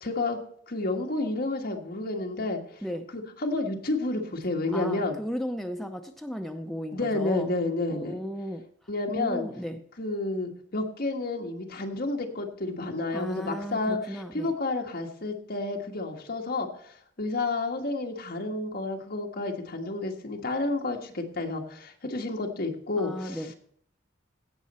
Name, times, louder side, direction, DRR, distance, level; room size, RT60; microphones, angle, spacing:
voice 1, 0.0-0.4 0.7-2.6 3.1-5.2 6.9-8.2 8.9-9.5 10.0-23.4, left 2 dB, 50° left, 2 dB, 1.6 m, -30 dB
voice 2, 4.7-7.5 7.9-8.6 9.1-9.8 13.1-14.5 23.0-23.5, equal, ahead, 4 dB, 0.6 m, -35 dB
16.5 x 6.5 x 4.3 m, 0.64 s
head